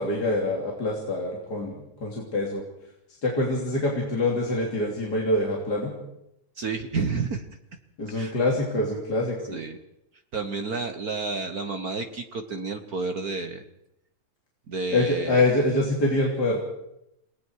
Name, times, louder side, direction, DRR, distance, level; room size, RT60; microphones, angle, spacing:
voice 1, 0.0-1.7 2.0-2.6 3.2-5.9 8.0-9.6 14.9-16.6, left 2 dB, 30° left, -2 dB, 3.5 m, -25 dB
voice 2, 6.6-7.5 8.1-8.3 9.5-9.8 10.3-13.6 14.7-15.4, right 4 dB, 65° right, 6 dB, 0.9 m, -30 dB
29.0 x 19.0 x 4.7 m, 0.81 s
omnidirectional pair, 3.5 m